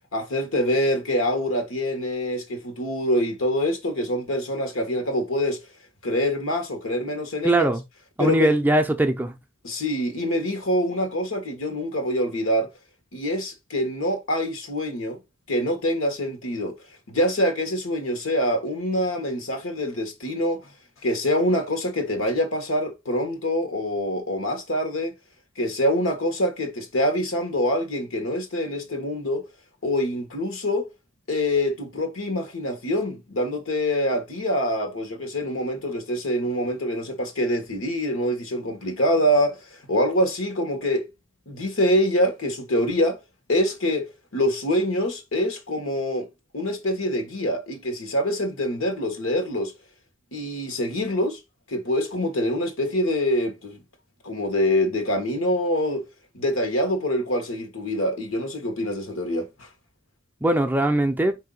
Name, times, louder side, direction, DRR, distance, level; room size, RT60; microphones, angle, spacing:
voice 1, 0.1-5.6 6.0-7.7 8.2-8.5 9.6-12.7 13.1-15.2 15.5-16.8 17.1-20.7 21.0-25.1 25.6-29.5 29.8-30.9 31.3-41.1 41.5-43.2 43.5-46.3 46.5-49.7 50.3-51.4 51.7-53.8 54.2-56.1 56.3-59.7, equal, 80° left, 1.3 m, -25 dB
voice 2, 7.4-7.8 8.2-9.4 60.4-61.4, right 2 dB, 10° right, 0.4 m, -21 dB
4.8 x 2.8 x 3.7 m
head